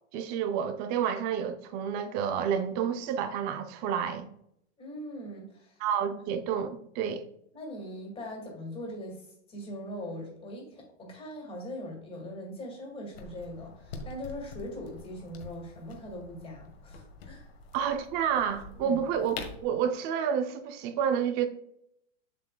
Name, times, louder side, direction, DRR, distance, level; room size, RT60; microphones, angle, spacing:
voice 1, 0.1-4.3 5.8-7.3 17.7-19.3 19.6-21.5, right 8 dB, 25° right, 0.6 m, -29 dB
voice 2, 4.8-5.8 7.5-17.5 18.8-19.0, equal, 15° left, 2.2 m, -41 dB
sound 1, 13.1-19.7, left 3 dB, 55° left, 1.5 m, -45 dB
7.5 x 6.5 x 2.3 m
hypercardioid pair, 145°, 36 cm